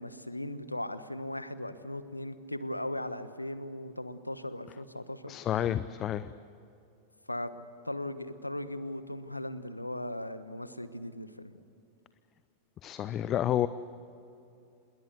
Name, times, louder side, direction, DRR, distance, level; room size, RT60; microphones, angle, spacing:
voice 1, 0.0-5.3 7.3-7.5 7.8-11.6, left 1 dB, 85° left, 13 dB, 1.2 m, -38 dB
voice 2, 5.3-6.3 12.8-13.7, left 11 dB, 30° left, 15 dB, 0.6 m, -30 dB
27.5 x 21.0 x 8.3 m, 2.7 s
figure-of-eight pair, 90°, 0 cm